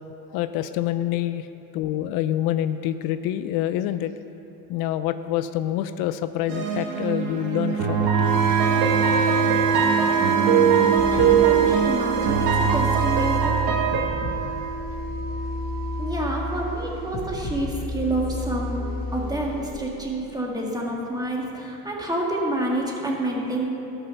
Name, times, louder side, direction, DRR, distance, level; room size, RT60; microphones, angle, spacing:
voice 1, 0.3-1.5 1.7-4.1 4.7-8.1 11.3-11.4, left 12 dB, 75° left, 12 dB, 0.5 m, -26 dB
sound 1, 6.5-14.1, right 7 dB, 75° right, 1.6 m, -22 dB
Wind instrument woodwind instrument, 8.1-18.1, right 7 dB, 60° right, 1.0 m, -27 dB
voice 2, 10.3-13.8 16.0-18.9 19.1-23.7, right 1 dB, 10° right, -2 dB, 1.8 m, -28 dB
sound 2, 10.9-19.6, left 3 dB, 45° left, 1.5 m, -32 dB
12.0 x 5.6 x 5.7 m, 2.9 s
supercardioid pair, 95°, 37 cm